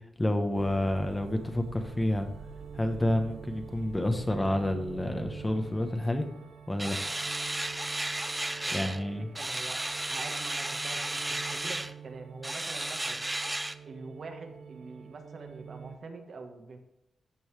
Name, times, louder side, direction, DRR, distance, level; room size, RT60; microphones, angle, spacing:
voice 1, 0.2-2.3 2.7-6.2 6.7-7.0 8.7-9.3, left 1 dB, 15° left, 5 dB, 0.9 m, -29 dB
sound 1, 0.5-16.0, right 7 dB, 80° right, 0.7 m, -46 dB
sound 2, 6.8-9.0 9.3-11.9 12.4-13.7, right 1 dB, 15° right, 0.5 m, -33 dB
voice 2, 8.5-9.1 9.3-11.2 11.4-11.8 12.0-13.2 13.8-16.8, right 3 dB, 55° right, 4 dB, 1.3 m, -45 dB
14.0 x 5.4 x 3.2 m, 0.88 s
wide cardioid pair, 120°, 0 cm